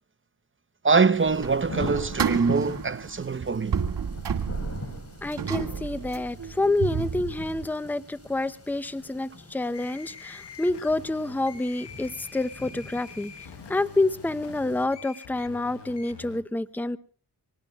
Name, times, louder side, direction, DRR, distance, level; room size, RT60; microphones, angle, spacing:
voice 1, 0.8-3.8, right 4 dB, 30° right, 0.9 m, -23 dB
sound 1, 1.1-14.8, left 1 dB, 35° left, 4.6 m, -42 dB
sound 2, 1.3-7.7, right 7 dB, 70° right, 2.2 m, -31 dB
voice 2, 5.2-13.3 13.7-17.0, left 2 dB, 5° left, 0.8 m, -28 dB
sound 3, 9.7-16.4, left 7 dB, 85° left, 1.6 m, -46 dB
25.5 x 19.0 x 2.4 m
cardioid pair, 45°, 41 cm